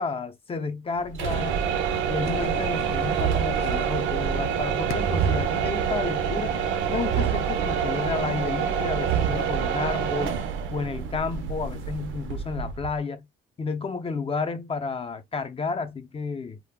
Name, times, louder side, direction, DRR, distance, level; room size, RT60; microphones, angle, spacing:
voice 1, 0.0-1.6 2.1-6.6 6.9-10.3 10.7-13.3 13.6-16.6, left 4 dB, 30° left, 0.6 m, -31 dB
sound 1, 1.1-13.0, right 7 dB, 80° right, 0.6 m, -26 dB
sound 2, 2.2-5.4, left 10 dB, 80° left, 0.4 m, -41 dB
2.3 x 2.1 x 3.5 m
cardioid pair, 90°, 20 cm